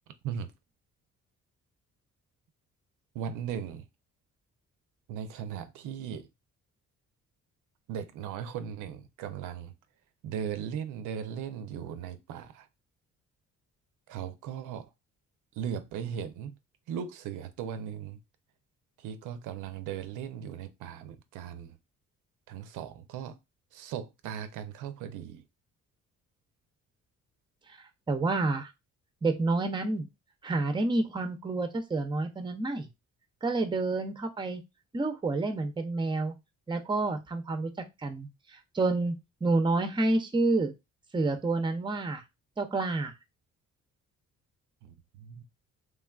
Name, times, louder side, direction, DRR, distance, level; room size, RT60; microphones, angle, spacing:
voice 1, 3.1-3.9 5.1-6.3 7.9-9.7 10.2-12.7 14.1-14.9 15.5-16.6 16.9-18.2 19.0-21.8 22.5-23.4 23.7-25.4 44.8-45.4, right 8 dB, 85° right, 0.5 m, -38 dB
voice 2, 28.1-28.7 29.2-30.1 30.4-32.9 33.4-34.6 34.9-36.3 36.7-37.7 38.0-39.2 39.4-40.7 41.1-42.2 42.6-43.1, right 3 dB, 15° right, 0.5 m, -29 dB
3.2 x 2.3 x 2.3 m
cardioid pair, 90°, 30 cm